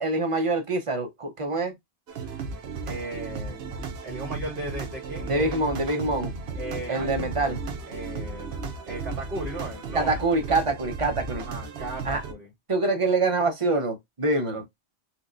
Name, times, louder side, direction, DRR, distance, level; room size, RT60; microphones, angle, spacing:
voice 1, 0.0-1.8 5.3-6.3 6.9-7.6 9.9-11.4 12.0-12.2 12.7-14.7, right 2 dB, 35° right, 0.6 m, -25 dB
sound 1, 2.1-12.3, right 4 dB, 70° right, 0.9 m, -35 dB
voice 2, 2.9-3.6 4.0-5.6 6.5-8.6 8.9-10.2 11.3-12.5, right 1 dB, 50° right, 1.6 m, -37 dB
4.3 x 2.1 x 2.5 m
omnidirectional pair, 1.1 m